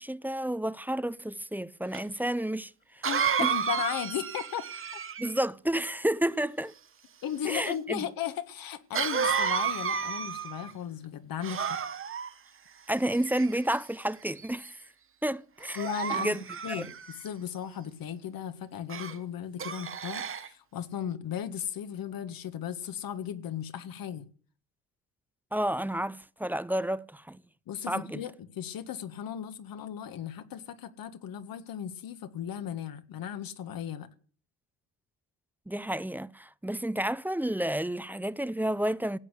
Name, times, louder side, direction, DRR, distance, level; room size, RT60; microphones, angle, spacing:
voice 1, 0.0-3.1 3.4-3.5 5.2-6.7 7.4-8.1 12.9-14.8 15.2-15.8 16.1-16.9 25.5-27.4 27.9-28.2 35.7-39.2, right 1 dB, 5° right, 0.6 m, -31 dB
Cough, 1.9-2.0 3.0-5.4 8.9-10.7 11.4-12.3 13.1-13.7 14.4-14.7 15.6-17.3 18.9-19.2 19.6-20.5, right 7 dB, 35° right, 1.1 m, -31 dB
voice 2, 3.0-4.7 7.2-11.8 15.8-16.4 16.6-24.3 27.7-34.1, left 9 dB, 65° left, 1.8 m, -36 dB
16.5 x 8.3 x 8.2 m
cardioid pair, 85°, 37 cm